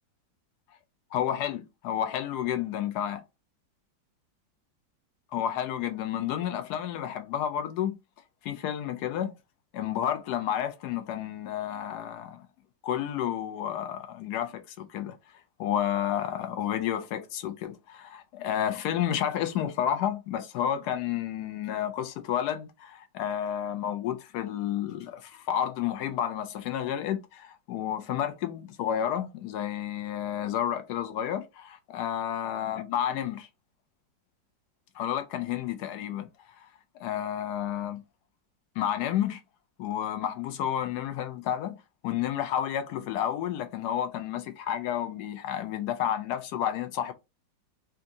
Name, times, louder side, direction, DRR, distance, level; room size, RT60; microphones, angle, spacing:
voice 1, 1.1-3.2 5.3-7.9 8.4-9.3 9.7-12.5 12.8-15.2 15.6-33.5 34.9-36.3 36.6-36.7 37.0-38.0 38.8-39.4 39.8-41.8 42.0-47.1, left 10 dB, 75° left, 0.9 m, -31 dB
3.4 x 2.8 x 2.6 m
omnidirectional pair, 2.1 m